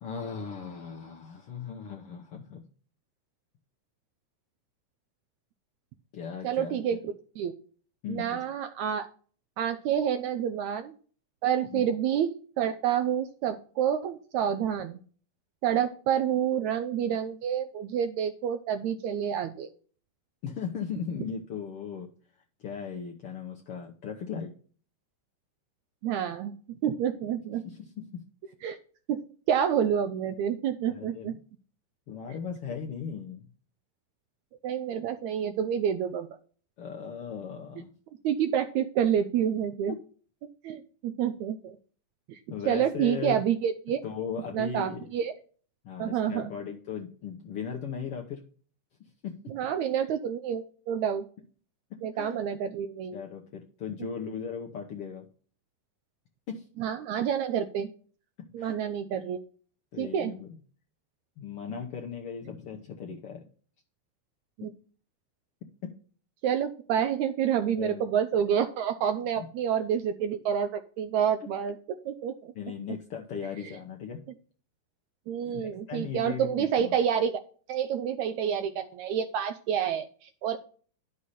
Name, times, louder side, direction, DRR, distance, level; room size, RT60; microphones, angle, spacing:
voice 1, 0.0-2.6 6.1-7.0 8.0-8.4 11.7-11.9 20.4-22.1 22.6-24.5 27.6-28.2 30.9-31.4 32.1-33.5 36.8-37.9 39.9-40.0 42.5-43.4 44.0-45.1 45.8-48.4 49.2-49.4 51.9-52.4 53.1-55.3 56.5-56.6 58.6-58.7 59.9-60.6 61.4-63.5 65.8-65.9 67.8-68.1 69.4-69.5 72.5-74.2 75.4-76.9, left 6 dB, 65° left, 1 dB, 1.5 m, -37 dB
voice 2, 6.4-7.5 8.1-9.1 9.6-11.0 11.4-12.3 12.6-15.0 15.6-19.7 26.0-27.6 28.6-28.8 29.1-29.2 29.5-31.3 34.6-36.3 38.2-40.0 40.6-41.8 42.3-42.4 42.7-44.0 44.5-45.3 46.0-46.5 49.5-51.3 52.0-53.2 56.8-57.9 58.5-59.4 60.0-60.3 64.6-64.7 66.4-71.8 72.1-72.5 75.3-77.4 77.7-80.6, right 9 dB, 80° right, 9 dB, 1.7 m, -28 dB
11.5 x 6.5 x 4.2 m, 0.43 s
omnidirectional pair, 3.8 m